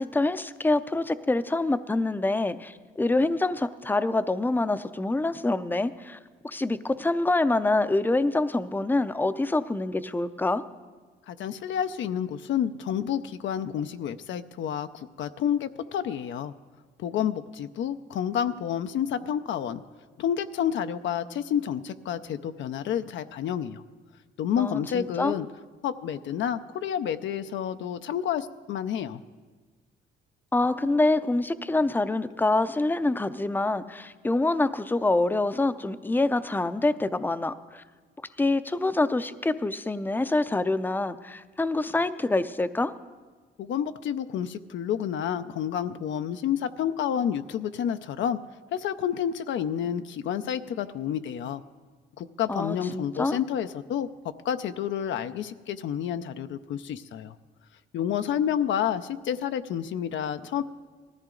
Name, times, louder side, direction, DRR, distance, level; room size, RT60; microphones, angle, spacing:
voice 1, 0.0-6.2 6.4-10.6 24.6-25.3 30.5-37.8 38.4-42.9 52.5-53.4, left 2 dB, 10° left, 12 dB, 0.5 m, -26 dB
voice 2, 11.3-16.5 17.0-19.8 20.2-23.8 24.4-25.5 25.8-29.2 43.6-48.4 48.7-51.6 52.2-54.1 54.4-57.3 57.9-60.6, left 9 dB, 70° left, 10 dB, 0.5 m, -29 dB
18.5 x 14.0 x 3.8 m, 1.4 s
cardioid pair, 90°, 20 cm